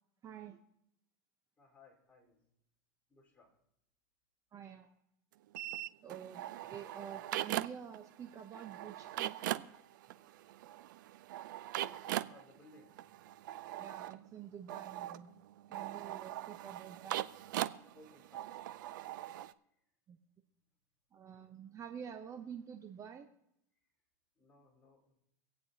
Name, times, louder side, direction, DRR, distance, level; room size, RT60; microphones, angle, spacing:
voice 1, 0.2-0.6 4.5-4.9 6.0-6.4 6.7-9.7 13.7-15.3 15.7-17.2 20.1-20.2 21.1-23.3, right 8 dB, 30° right, 7 dB, 0.9 m, -48 dB
voice 2, 1.6-2.4 3.1-3.5 10.1-10.3 11.7-13.0 17.9-18.8 24.4-25.1, left 2 dB, 15° left, -3 dB, 4.4 m, -62 dB
sound 1, 5.5-8.0 8.2-19.5, right 14 dB, 80° right, 0.5 m, -41 dB
25.5 x 8.7 x 2.9 m, 0.79 s
supercardioid pair, 120°, 10 cm